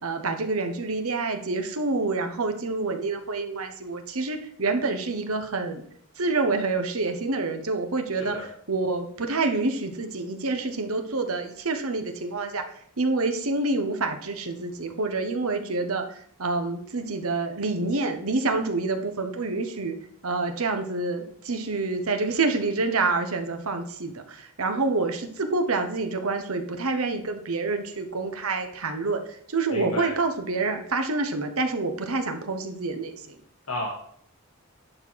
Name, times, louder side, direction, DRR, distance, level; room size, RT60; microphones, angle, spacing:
voice 1, 0.0-5.8 6.2-12.6 13.0-19.9 20.2-33.4, right 3 dB, 75° right, 6 dB, 1.1 m, -27 dB
voice 2, 8.1-8.4 29.7-30.1 33.7-33.9, left 2 dB, 75° left, -3 dB, 1.6 m, -32 dB
11.0 x 4.5 x 4.7 m, 0.63 s
head